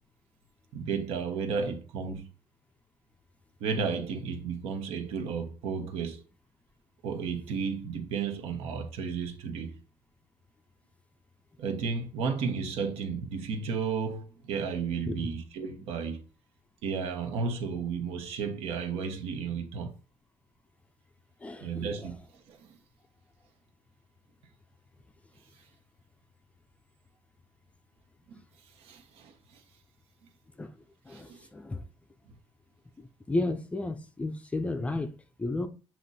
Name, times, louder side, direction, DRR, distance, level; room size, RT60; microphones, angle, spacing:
voice 1, 0.7-2.3 3.6-6.2 7.0-9.8 11.6-16.2 16.8-20.0 21.6-22.2 22.5-22.8 28.8-29.6 31.1-31.5, right 5 dB, 75° right, 1.3 m, -33 dB
voice 2, 21.4-21.8 30.6-30.7 31.1-31.8 33.0-35.7, left 2 dB, 15° left, 0.5 m, -33 dB
7.8 x 3.0 x 4.1 m
cardioid pair, 160°, 10 cm